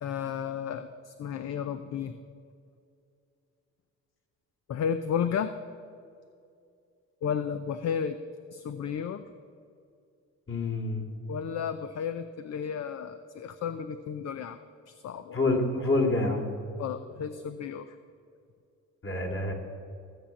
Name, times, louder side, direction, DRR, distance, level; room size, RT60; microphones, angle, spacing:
voice 1, 0.0-2.2 4.7-5.5 7.2-8.2 8.5-9.3 11.3-14.6 14.9-15.4 16.7-18.0, left 7 dB, 60° left, 10 dB, 0.6 m, -33 dB
voice 2, 10.5-11.0 15.3-16.5 19.0-19.5, left 2 dB, 40° left, 2 dB, 2.8 m, -27 dB
16.0 x 7.4 x 7.1 m, 2.4 s
cardioid pair, 90°, 30 cm